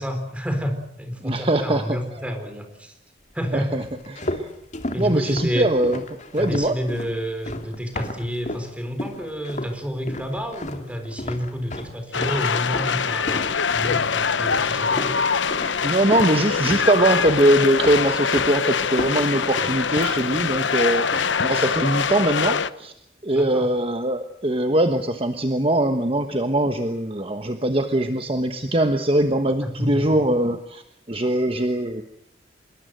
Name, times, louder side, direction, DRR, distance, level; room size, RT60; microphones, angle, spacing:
voice 1, 0.0-2.9 3.3-3.9 4.9-5.7 6.4-13.5 13.7-15.1 23.3-23.7 29.6-30.1, equal, 5° right, 6 dB, 4.0 m, -29 dB
voice 2, 1.2-2.0 3.5-3.8 4.1-4.5 5.0-6.7 15.8-22.9 23.2-30.8 31.1-32.0, right 1 dB, 30° right, 7 dB, 1.2 m, -22 dB
sound 1, 3.8-8.7 9.0-9.8 10.1-16.3 16.6-17.5 17.8-18.6 18.8-20.7 21.0-21.4, left 1 dB, 40° left, 2.4 m, -33 dB
sound 2, 12.1-22.7, left 6 dB, 85° left, 0.9 m, -23 dB
25.5 x 22.0 x 7.9 m, 0.74 s
head